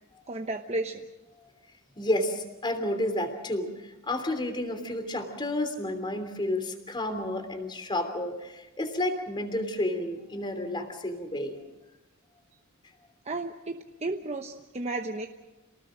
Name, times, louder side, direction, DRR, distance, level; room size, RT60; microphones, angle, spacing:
voice 1, 0.3-1.0 13.3-15.3, right 2 dB, 30° right, 4 dB, 1.0 m, -33 dB
voice 2, 2.0-11.6, left 1 dB, 20° left, 7 dB, 3.2 m, -31 dB
28.0 x 19.0 x 6.4 m, 1.1 s
head